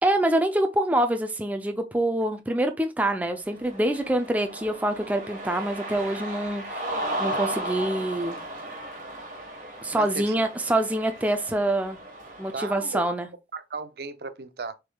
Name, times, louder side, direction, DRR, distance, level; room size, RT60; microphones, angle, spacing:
voice 1, 0.0-6.8 7.2-8.4 9.8-12.0 12.4-13.3, right 1 dB, 10° right, 0.4 m, -25 dB
Cheering, 3.5-12.7, right 1 dB, 45° right, 1.3 m, -35 dB
voice 2, 10.0-10.3 12.5-13.0 13.5-14.7, right 4 dB, 60° right, 0.5 m, -35 dB
6.3 x 3.5 x 2.2 m
head